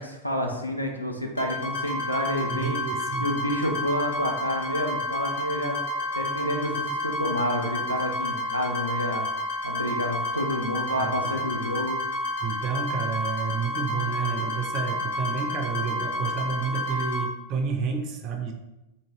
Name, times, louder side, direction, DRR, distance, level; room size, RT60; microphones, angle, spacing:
voice 1, 0.0-2.8 3.2-5.8 6.1-9.3 9.6-12.0, equal, 90° left, 2 dB, 0.4 m, -29 dB
sound 1, 1.4-17.2, left 1 dB, 60° left, 0.7 m, -30 dB
voice 2, 2.5-3.3 11.0-11.5 12.4-18.5, right 5 dB, 35° right, 3 dB, 0.4 m, -30 dB
2.7 x 2.5 x 2.9 m, 0.96 s
figure-of-eight pair, 90°, 0 cm